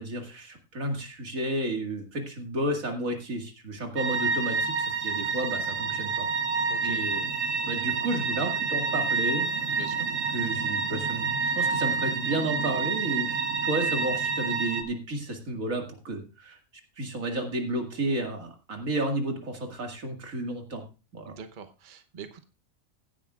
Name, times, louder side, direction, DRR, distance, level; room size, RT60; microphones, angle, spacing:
voice 1, 0.0-6.3 6.8-7.3 7.6-9.5 10.3-16.6 17.0-20.8 21.1-21.3, right 1 dB, 90° right, 3 dB, 2.5 m, -32 dB
sound 1, 4.0-14.8, right 4 dB, 70° right, 1.3 m, -28 dB
voice 2, 9.8-10.1 21.3-22.4, right 6 dB, 40° right, 7 dB, 1.0 m, -43 dB
16.5 x 10.0 x 2.4 m, 0.31 s
omnidirectional pair, 1.4 m